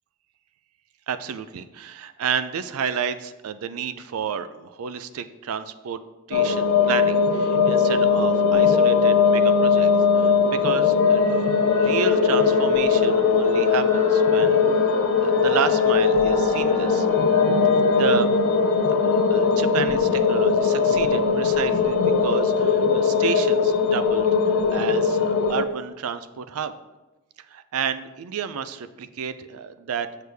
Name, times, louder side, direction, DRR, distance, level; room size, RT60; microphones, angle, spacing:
voice 1, 1.1-6.0 6.3-11.4 11.8-14.6 15.2-17.1 18.0-18.3 19.0-24.3 24.7-26.7 27.5-30.1, right 7 dB, 80° right, 12 dB, 0.4 m, -31 dB
sound 1, 6.3-25.6, left 5 dB, 80° left, 0.5 m, -20 dB
sound 2, 10.9-20.4, right 1 dB, 10° left, 2.1 m, -37 dB
6.7 x 6.3 x 3.4 m, 1.1 s
head